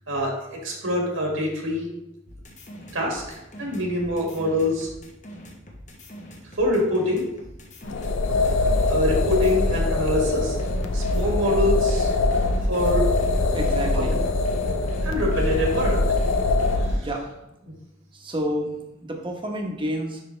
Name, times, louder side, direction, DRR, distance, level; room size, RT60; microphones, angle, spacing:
voice 1, 0.1-1.9 2.9-4.9 6.6-7.3 8.5-10.6 10.9-12.1 12.7-13.1 13.9-14.0 15.0-16.0 16.8-17.1, left 1 dB, 80° right, -1 dB, 1.8 m, -25 dB
sound 1, 2.3-10.1 10.6-16.7, equal, 40° left, 1.0 m, -42 dB
sound 2, 7.8-17.0, left 2 dB, 70° left, 0.6 m, -23 dB
voice 2, 13.5-14.2 16.9-17.2 18.1-18.7 19.0-20.2, equal, 25° right, 1 dB, 1.0 m, -29 dB
10.0 x 3.5 x 3.2 m, 0.92 s
head